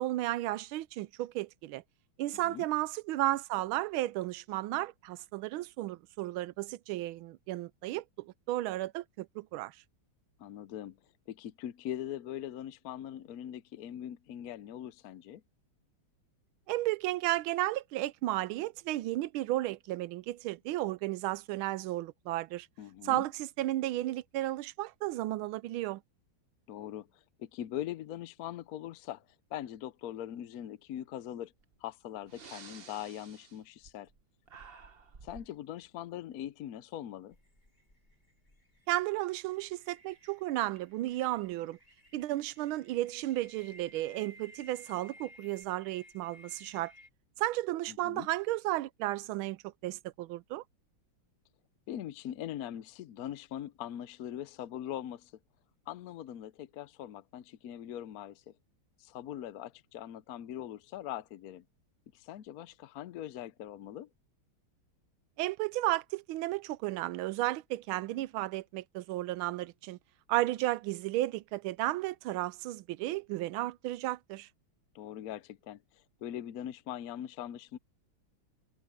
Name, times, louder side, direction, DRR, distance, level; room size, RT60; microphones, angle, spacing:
voice 1, 0.0-1.8 2.2-9.7 16.7-22.7 23.0-26.0 38.9-41.8 42.1-46.9 47.4-50.6 65.4-70.0 70.3-74.5, right 16 dB, 80° right, 1.4 m, -33 dB
voice 2, 10.4-11.0 11.3-15.4 22.8-23.2 26.7-29.3 29.5-31.5 31.8-34.1 35.2-37.4 47.9-48.3 51.9-55.3 55.9-58.5 59.0-61.6 62.1-64.1 74.9-77.8, left 11 dB, 70° left, 0.9 m, -41 dB
Breathing, 31.6-31.7 32.2-34.2 34.5-35.6, right 5 dB, 40° right, 1.0 m, -52 dB
sound 1, 37.3-47.1, equal, 20° left, 5.3 m, -58 dB
omnidirectional pair, 2.3 m